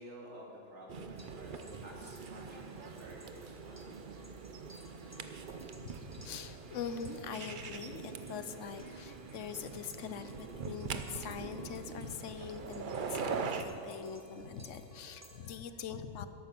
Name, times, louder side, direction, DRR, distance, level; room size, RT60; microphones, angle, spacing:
voice 1, 0.0-4.1, right 1 dB, 70° right, -3 dB, 3.0 m, -52 dB
sound 1, 0.9-13.6, right 5 dB, 50° right, 0.8 m, -43 dB
sound 2, 1.2-15.5, right 1 dB, 15° right, 1.2 m, -59 dB
voice 2, 5.8-16.3, left 7 dB, 90° left, 10 dB, 1.1 m, -43 dB
13.5 x 11.5 x 6.1 m, 3.0 s
omnidirectional pair, 1.2 m